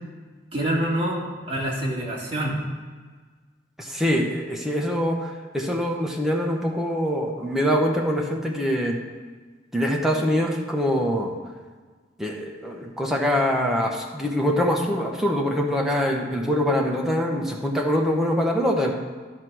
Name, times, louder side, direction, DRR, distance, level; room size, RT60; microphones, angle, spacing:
voice 1, 0.5-2.6, right 1 dB, 30° right, -4 dB, 2.2 m, -26 dB
voice 2, 3.8-9.0 9.7-11.3 12.2-18.9, equal, ahead, -1 dB, 1.1 m, -24 dB
12.0 x 4.2 x 6.2 m, 1.4 s
head